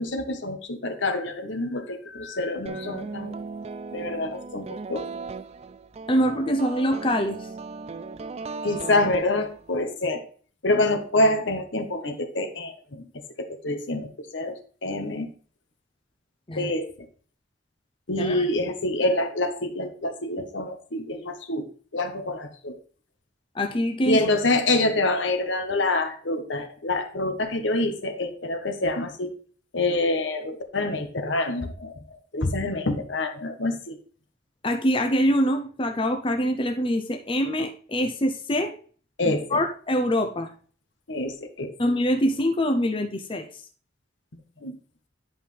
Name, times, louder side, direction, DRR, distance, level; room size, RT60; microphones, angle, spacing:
voice 1, 0.0-3.4 3.9-5.1 8.6-10.2 10.6-13.0 13.4-15.3 16.5-16.9 18.1-21.7 21.9-22.8 24.0-29.3 29.7-34.0 39.2-39.6 41.1-41.7 44.6-44.7, left 2 dB, 75° left, 6 dB, 1.2 m, -26 dB
sound 1, 2.7-9.8, right 4 dB, 35° right, 0.3 m, -37 dB
voice 2, 6.1-7.5 16.5-16.7 18.2-18.4 23.5-24.3 34.6-38.8 39.2-40.5 41.8-43.6, equal, 30° left, 5 dB, 0.7 m, -24 dB
10.0 x 5.5 x 3.3 m, 0.43 s
head